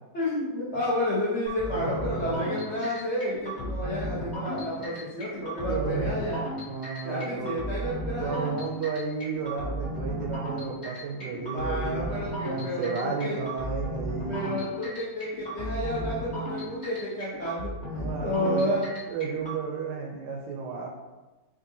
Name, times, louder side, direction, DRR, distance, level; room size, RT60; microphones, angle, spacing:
voice 1, 0.1-6.4 7.0-8.5 11.5-13.4 14.3-18.8, left 1 dB, 60° left, -9 dB, 0.7 m, -31 dB
sound 1, 1.5-19.6, equal, 30° left, 1.0 m, -35 dB
voice 2, 1.6-2.5 4.8-4.9 5.6-6.2 6.7-7.5 8.2-12.0 12.4-14.5 17.9-18.7 19.1-20.9, right 5 dB, 75° right, -1 dB, 1.1 m, -33 dB
5.3 x 2.5 x 2.6 m, 1.2 s
omnidirectional pair, 2.1 m